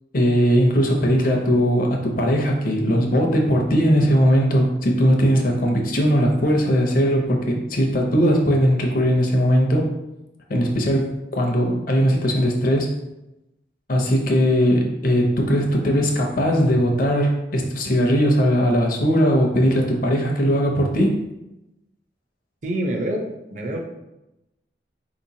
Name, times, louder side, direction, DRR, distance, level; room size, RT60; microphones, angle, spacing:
voice 1, 0.1-9.9 10.5-12.9 13.9-21.1, equal, 50° left, 2 dB, 0.6 m, -19 dB
voice 2, 22.6-23.8, right 1 dB, 40° right, 1 dB, 0.5 m, -26 dB
4.2 x 2.9 x 2.7 m, 0.93 s
head